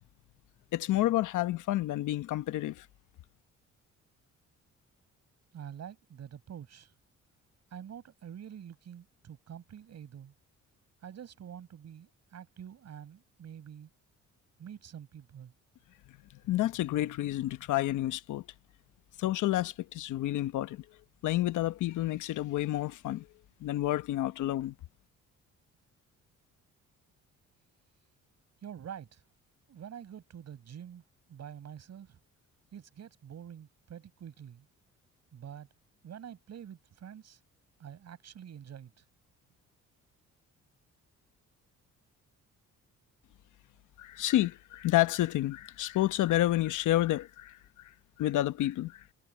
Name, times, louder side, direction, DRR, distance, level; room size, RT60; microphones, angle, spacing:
voice 1, 0.7-2.9 16.4-18.4 19.2-20.8 21.2-23.3 23.6-24.7 44.0-47.6 48.2-49.0, left 15 dB, 80° left, 1.0 m, -29 dB
voice 2, 5.5-6.9 7.7-10.3 11.0-13.9 14.6-15.5 28.6-29.2 29.7-31.0 31.3-32.2 32.7-34.7 35.3-35.7 36.0-37.4 37.8-38.9, right 9 dB, 60° right, 5.8 m, -46 dB
cardioid pair, 90°, 30 cm